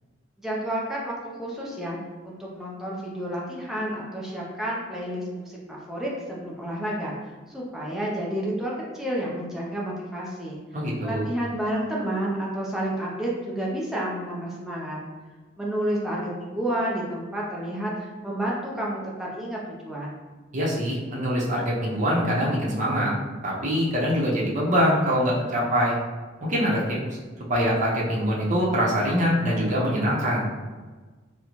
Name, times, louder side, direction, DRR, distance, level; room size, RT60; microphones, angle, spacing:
voice 1, 0.4-2.0 2.2-7.1 7.5-10.6 11.0-15.0 15.6-20.1, right 1 dB, ahead, -5 dB, 0.5 m, -30 dB
voice 2, 10.7-11.3 20.5-23.2 23.4-25.9 26.4-27.0 27.5-30.5, equal, 40° right, -5 dB, 0.7 m, -24 dB
3.8 x 2.1 x 3.0 m, 1.3 s
head